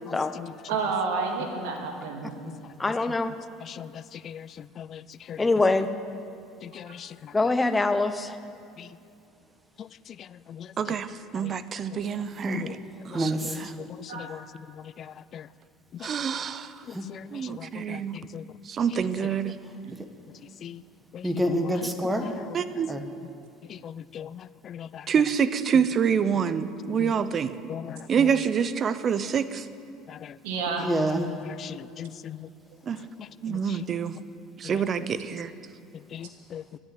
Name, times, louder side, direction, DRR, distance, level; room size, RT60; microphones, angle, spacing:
voice 1, 0.7-2.3 6.9-7.0 14.1-14.3 30.4-30.9, right 4 dB, 85° right, 2 dB, 2.4 m, -29 dB
voice 2, 2.8-3.3 5.4-5.9 7.3-8.4, left 3 dB, 15° left, 10 dB, 0.8 m, -24 dB
voice 3, 10.8-12.8 13.0-13.7 16.0-16.8 17.3-18.2 18.6-19.6 22.5-22.9 25.1-27.6 28.1-29.7 32.9-33.0 33.4-34.2 34.6-35.5, right 7 dB, 35° right, 14 dB, 0.7 m, -27 dB
voice 4, 13.1-13.7 16.9-17.0 21.2-22.3 22.9-23.0 30.8-31.3, right 1 dB, 10° right, 6 dB, 1.4 m, -27 dB
voice 5, 23.8-24.3 24.7-24.9 27.7-27.8 31.6-32.4 33.5-33.6 36.1-36.6, left 9 dB, 40° left, 19 dB, 0.4 m, -38 dB
11.5 x 10.5 x 9.6 m, 2.6 s
supercardioid pair, 120°, 0 cm